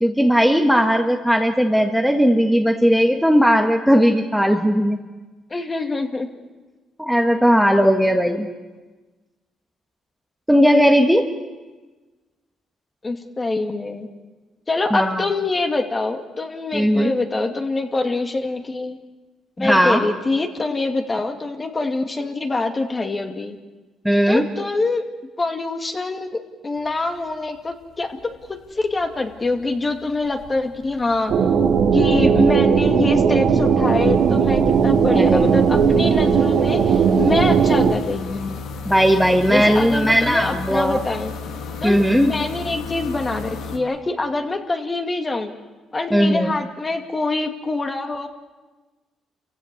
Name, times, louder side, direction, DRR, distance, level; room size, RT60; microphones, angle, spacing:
voice 1, 0.0-5.0 7.0-8.5 10.5-11.3 14.9-15.2 16.7-17.1 19.6-20.1 24.0-24.4 35.1-35.5 38.8-41.0 41.8-42.3 46.1-46.5, equal, ahead, 3 dB, 1.5 m, -17 dB
voice 2, 5.5-6.3 13.0-14.1 14.7-19.0 19.6-23.6 24.3-25.1 25.4-31.3 31.9-38.6 39.5-41.3 41.8-45.5 45.9-48.3, left 3 dB, 25° left, 4 dB, 2.4 m, -25 dB
sound 1, 26.8-27.3 27.6-43.8, left 4 dB, 80° left, 1.9 m, -36 dB
sound 2, 31.3-37.9, right 6 dB, 70° right, 2.1 m, -17 dB
29.0 x 16.0 x 7.1 m, 1.2 s
cardioid pair, 90°, 0 cm